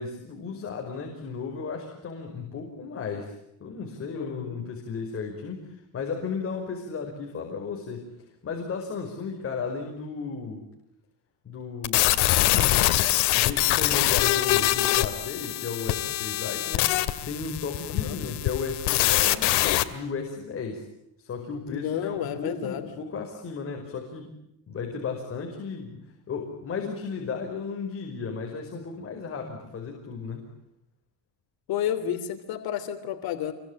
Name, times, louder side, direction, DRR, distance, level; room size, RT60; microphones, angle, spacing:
voice 1, 0.0-3.4 3.6-10.7 11.4-12.1 12.4-12.8 13.3-19.6 19.9-20.9 21.2-24.3 24.7-30.5, left 5 dB, 35° left, 2 dB, 5.3 m, -34 dB
voice 2, 4.1-4.6 18.0-18.2 21.7-22.9 31.7-33.5, left 10 dB, 60° left, 7 dB, 3.2 m, -31 dB
sound 1, 11.8-19.8, left 16 dB, 75° left, 2.3 m, -24 dB
28.5 x 24.0 x 8.9 m, 0.81 s
cardioid pair, 145°, 41 cm